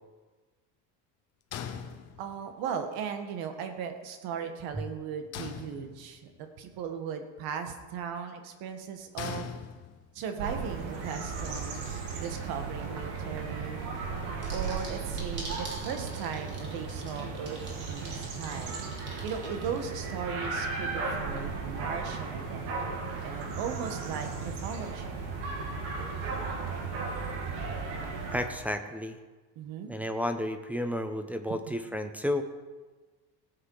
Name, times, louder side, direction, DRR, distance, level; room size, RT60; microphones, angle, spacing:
sound 1, 1.5-2.6 5.3-6.4 9.2-10.3, left 8 dB, 40° left, 0.9 m, -41 dB
voice 1, 2.2-9.4 10.1-13.9 14.5-17.6 17.9-18.8 19.2-25.2 29.5-29.9 31.5-31.8, right 7 dB, 60° right, 6 dB, 1.6 m, -37 dB
sound 2, 10.4-28.5, right 4 dB, 80° right, 2.7 m, -35 dB
sound 3, 14.4-20.0, right 2 dB, 25° right, 3.1 m, -44 dB
voice 2, 28.3-29.2 29.9-32.4, left 1 dB, 5° right, 5 dB, 0.3 m, -32 dB
17.5 x 8.1 x 4.8 m, 1.3 s
cardioid pair, 170°, 40 cm